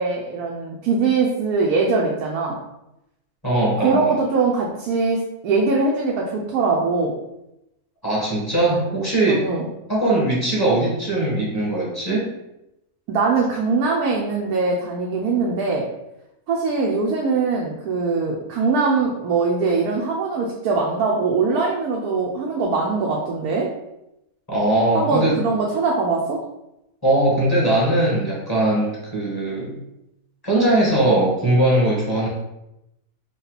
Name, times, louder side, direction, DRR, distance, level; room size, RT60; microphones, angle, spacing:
voice 1, 0.0-2.6 3.8-7.1 8.9-9.0 9.3-9.7 13.1-15.9 16.5-23.7 24.9-26.4, right 4 dB, 85° right, -2 dB, 1.2 m, -22 dB
voice 2, 3.4-4.2 8.0-9.4 9.9-12.3 24.5-25.3 27.0-29.7 30.4-32.3, right 1 dB, 15° left, -6 dB, 1.4 m, -20 dB
5.1 x 2.3 x 4.0 m, 0.87 s
omnidirectional pair, 1.5 m